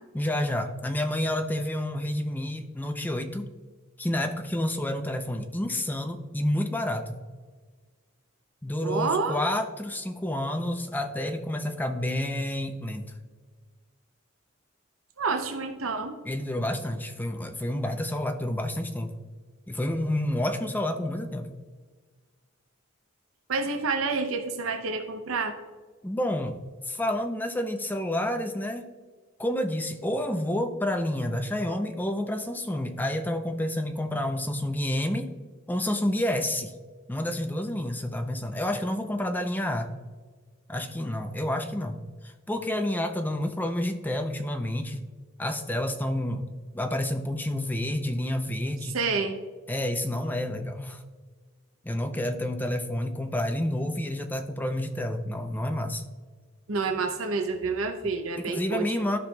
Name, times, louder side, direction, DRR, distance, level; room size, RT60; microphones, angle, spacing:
voice 1, 0.1-3.5 4.0-7.2 8.6-13.1 16.2-19.1 19.7-21.5 26.0-26.6 26.8-28.9 29.4-35.3 35.7-36.7 37.1-39.9 40.7-45.0 45.4-49.0 49.7-51.0 51.8-56.0 58.4-59.2, left 1 dB, 10° left, 5 dB, 0.5 m, -29 dB
voice 2, 8.8-9.4 15.2-16.2 23.5-25.6 48.9-49.4 56.7-59.0, right 4 dB, 75° right, 5 dB, 0.7 m, -28 dB
13.0 x 5.7 x 2.3 m, 1.4 s
head